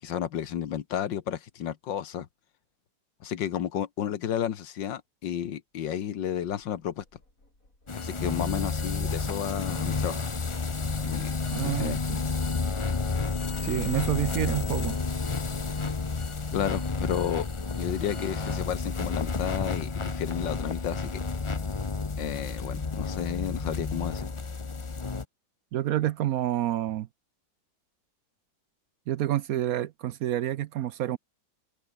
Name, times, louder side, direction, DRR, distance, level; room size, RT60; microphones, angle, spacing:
voice 1, 0.0-2.3 3.2-7.0 7.9-10.2 11.0-11.4 11.6-12.0 16.5-17.5 17.8-21.2 22.2-24.3, left 10 dB, 90° left, 1.9 m, -32 dB
Engine starting, 6.6-20.5, left 2 dB, 45° left, 7.9 m, -47 dB
sound 1, 7.9-25.2, left 4 dB, 30° left, 0.6 m, -31 dB
voice 2, 11.5-12.2 13.6-15.0 25.7-27.1 29.1-31.2, right 13 dB, 65° right, 0.9 m, -28 dB
open air
omnidirectional pair, 1.9 m